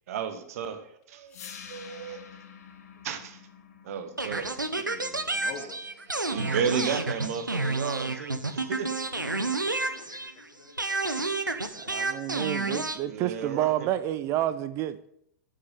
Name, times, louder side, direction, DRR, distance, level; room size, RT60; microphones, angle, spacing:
voice 1, 0.1-1.4 1.7-2.2 3.0-3.4 3.8-4.5 5.6-5.7 6.3-8.9 13.1-13.9, right 7 dB, 50° right, 1.1 m, -33 dB
sound 1, 1.3-7.3, left 7 dB, 55° left, 1.3 m, -49 dB
sound 2, 4.2-10.4 10.8-13.0, right 3 dB, 85° right, 0.7 m, -30 dB
voice 2, 4.8-5.9 8.8-9.4 9.9-10.3, left 7 dB, 35° left, 1.1 m, -46 dB
voice 3, 9.7-12.7, left 3 dB, 75° left, 2.3 m, -54 dB
voice 4, 11.9-15.1, right 13 dB, 30° right, 0.4 m, -29 dB
9.3 x 6.4 x 5.5 m
figure-of-eight pair, 105°, 10 cm